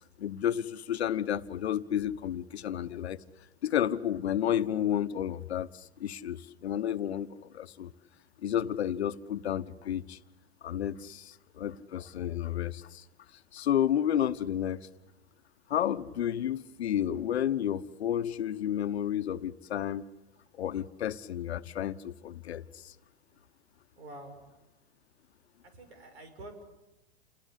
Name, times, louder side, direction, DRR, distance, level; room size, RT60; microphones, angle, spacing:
voice 1, 0.2-3.2 3.6-7.9 8.4-10.2 10.6-13.0 13.5-14.9 15.7-20.0 20.5-22.9, left 10 dB, 80° left, 12 dB, 1.2 m, -31 dB
voice 2, 24.0-24.5 25.6-26.6, right 1 dB, 80° right, 8 dB, 6.5 m, -47 dB
29.0 x 21.0 x 8.2 m, 1.0 s
hypercardioid pair, 125°, 32 cm